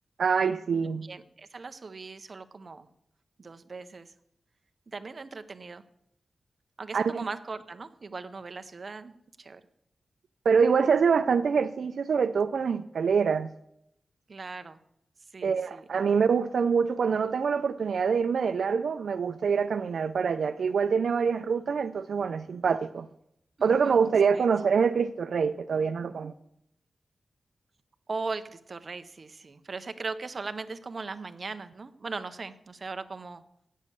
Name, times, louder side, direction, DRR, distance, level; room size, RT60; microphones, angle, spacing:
voice 1, 0.2-1.1 6.9-7.2 10.5-13.5 15.4-23.1 23.6-26.3, right 6 dB, 80° right, 0.4 m, -25 dB
voice 2, 0.8-2.9 3.4-4.1 4.9-5.8 6.8-9.1 9.4-9.6 14.3-14.8 15.3-15.8 23.6-24.0 24.3-24.5 28.1-33.4, right 4 dB, 40° right, 0.7 m, -39 dB
8.4 x 7.4 x 8.2 m
wide cardioid pair, 140°, 0 cm